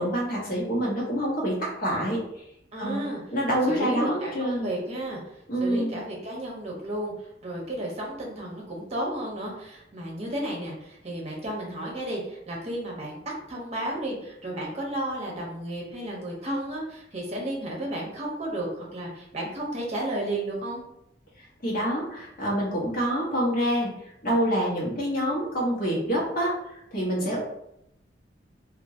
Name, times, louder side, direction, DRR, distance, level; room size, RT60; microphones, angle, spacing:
voice 1, 0.0-2.2 2.8-3.0 3.3-4.7 5.5-6.0 21.6-24.0 24.2-27.4, equal, 55° left, -5 dB, 1.1 m, -26 dB
voice 2, 2.7-3.2 3.7-5.2 5.6-7.1 7.4-13.2 13.5-20.8 27.2-27.4, right 1 dB, 40° right, -2 dB, 0.9 m, -33 dB
2.9 x 2.6 x 2.7 m, 0.80 s
head